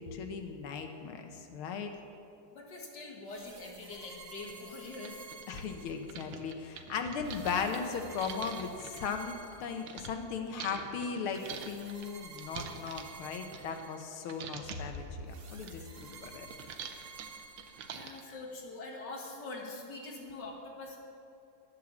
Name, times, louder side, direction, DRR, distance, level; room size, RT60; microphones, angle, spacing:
voice 1, 0.0-2.0 5.5-16.5 18.3-18.4, left 5 dB, 85° left, 5 dB, 1.9 m, -37 dB
voice 2, 2.5-5.2 17.9-21.1, left 2 dB, 55° left, -1 dB, 2.4 m, -44 dB
sound 1, 3.3-6.4 7.2-10.3 11.3-14.5 15.3-18.4, right 4 dB, 40° right, 0.8 m, -52 dB
sound 2, 3.8-3.9 4.5-4.6 4.9-10.1 10.6-14.0 14.3-15.0 15.3-18.3, right 7 dB, 80° right, 1.7 m, -46 dB
11.0 x 10.0 x 7.3 m, 2.7 s
omnidirectional pair, 2.3 m